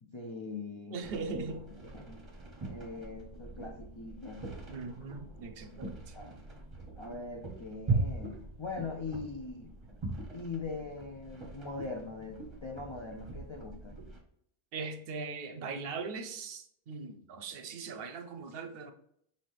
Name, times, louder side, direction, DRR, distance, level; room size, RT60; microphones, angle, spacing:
voice 1, 0.0-1.0 1.9-2.2 2.6-4.5 6.1-6.4 7.0-9.7 10.3-14.0, left 4 dB, 50° left, 0.3 m, -41 dB
voice 2, 0.9-1.6 4.7-6.1 14.7-18.9, right 4 dB, 65° right, 0.7 m, -40 dB
sound 1, 1.0-14.2, right 3 dB, 30° right, 0.8 m, -40 dB
5.6 x 2.7 x 3.3 m
omnidirectional pair, 1.1 m